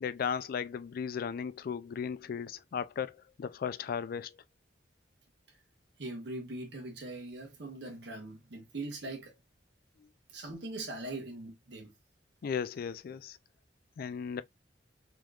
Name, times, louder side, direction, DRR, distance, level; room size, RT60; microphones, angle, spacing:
voice 1, 0.0-4.4 12.4-13.4 14.0-14.4, left 7 dB, 55° left, 0.3 m, -36 dB
voice 2, 6.0-9.3 10.3-11.9, right 2 dB, 65° right, 1.0 m, -41 dB
3.4 x 2.9 x 2.4 m
head